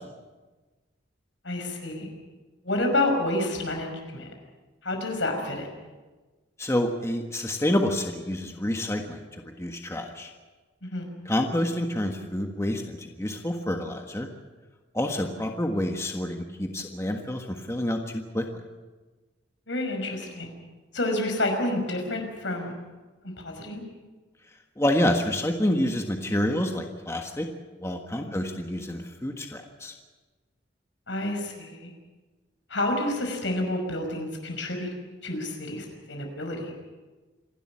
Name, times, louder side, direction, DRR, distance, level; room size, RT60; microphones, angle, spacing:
voice 1, 1.4-2.1 2.6-4.3 4.8-5.7 10.8-11.1 19.7-20.5 20.9-22.7 23.2-23.8 28.2-28.4 31.1-31.9 32.7-34.9 35.2-36.7, left 1 dB, 75° left, 3 dB, 5.6 m, -29 dB
voice 2, 6.6-10.3 11.2-14.3 14.9-18.4 24.8-27.5 27.8-29.9, left 1 dB, 15° left, 3 dB, 1.5 m, -28 dB
27.0 x 12.0 x 9.8 m, 1.3 s
head